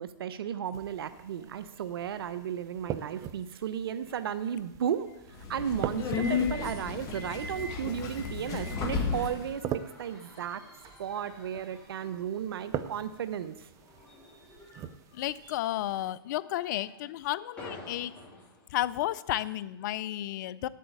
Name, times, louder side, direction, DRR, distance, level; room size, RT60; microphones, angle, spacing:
voice 1, 0.0-5.1 5.5-9.6 10.0-10.6 11.0-13.7, right 9 dB, 70° right, 13 dB, 0.8 m, -34 dB
sound 1, 0.7-16.1, right 10 dB, 25° right, 0.6 m, -43 dB
sound 2, 2.6-19.7, left 1 dB, 10° left, 5.6 m, -55 dB
Subway metro underground, 5.3-9.5, left 5 dB, 25° left, 1.9 m, -33 dB
voice 2, 15.1-18.2 18.7-20.7, left 14 dB, 50° left, 18 dB, 0.6 m, -32 dB
8.4 x 8.1 x 9.0 m, 0.92 s
hypercardioid pair, 135°, 13 cm